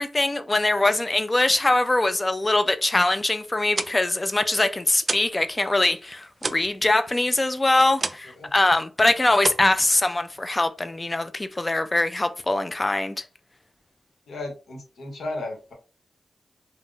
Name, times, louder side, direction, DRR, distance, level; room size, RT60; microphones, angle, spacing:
voice 1, 0.0-13.2, left 2 dB, 25° left, 0.4 m, -22 dB
sound 1, 3.5-5.4 5.7-8.4 8.7-9.0 9.4-10.5, right 3 dB, 40° right, 0.3 m, -32 dB
voice 2, 14.3-15.7, left 2 dB, 80° left, 1.0 m, -34 dB
2.5 x 2.1 x 3.7 m
cardioid pair, 60°, 0 cm